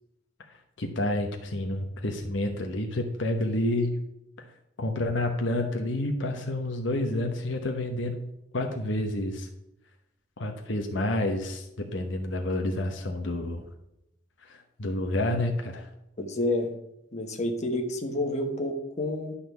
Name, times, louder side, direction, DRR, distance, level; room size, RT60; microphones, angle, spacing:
voice 1, 0.8-4.0 4.8-8.2 8.5-9.5 10.4-13.6 14.4-15.9, left 1 dB, 70° left, 4 dB, 1.1 m, -29 dB
voice 2, 16.2-16.7 17.1-19.3, left 1 dB, 35° left, 3 dB, 1.4 m, -29 dB
11.5 x 4.3 x 6.9 m, 0.85 s
head